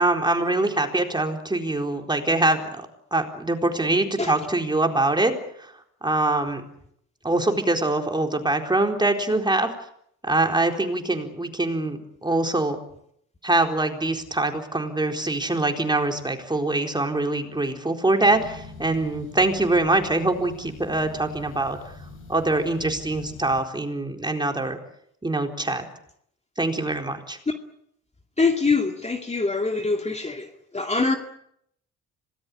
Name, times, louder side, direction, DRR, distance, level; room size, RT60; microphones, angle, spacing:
voice 1, 0.0-5.7 6.0-6.6 7.2-9.7 10.2-12.8 13.4-21.8 22.3-24.8 25.2-25.9 26.6-27.4, right 2 dB, 15° right, 4 dB, 4.2 m, -24 dB
sound 1, 18.2-23.6, left 3 dB, 45° left, 6.9 m, -44 dB
voice 2, 28.4-30.5 30.7-31.2, left 3 dB, 20° left, 4 dB, 2.4 m, -23 dB
26.0 x 19.0 x 8.6 m, 0.71 s
cardioid pair, 90°, 30 cm